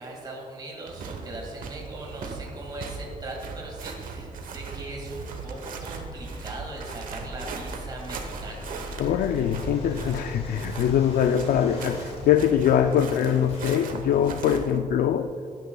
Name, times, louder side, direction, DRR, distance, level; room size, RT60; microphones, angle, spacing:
voice 1, 0.0-8.7, right 2 dB, 30° right, -1 dB, 2.1 m, -39 dB
sound 1, 0.9-14.8, right 5 dB, 70° right, 1.1 m, -38 dB
sound 2, 5.2-13.8, left 2 dB, 45° left, 1.3 m, -45 dB
sound 3, 5.8-12.3, left 1 dB, 5° left, 3.0 m, -43 dB
voice 2, 9.0-15.3, left 9 dB, 85° left, 8 dB, 0.4 m, -23 dB
16.5 x 11.5 x 2.3 m, 2.5 s
wide cardioid pair, 170°, 15 cm